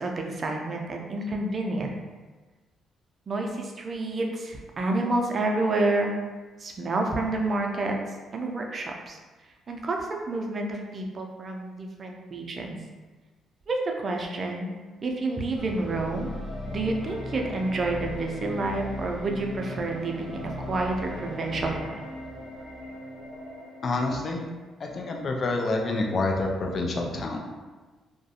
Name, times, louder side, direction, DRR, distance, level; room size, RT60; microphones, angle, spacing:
voice 1, 0.0-2.0 3.3-6.1 6.6-8.0 8.3-9.2 9.7-12.8 13.7-14.7 15.0-16.3 16.7-21.9, right 2 dB, 45° right, 1 dB, 0.4 m, -29 dB
sound 1, 15.6-24.6, left 1 dB, 30° left, 0.9 m, -38 dB
voice 2, 23.8-24.4 24.8-27.4, left 2 dB, 50° left, 1 dB, 0.4 m, -27 dB
2.4 x 2.2 x 2.7 m, 1.3 s
supercardioid pair, 65°, 0 cm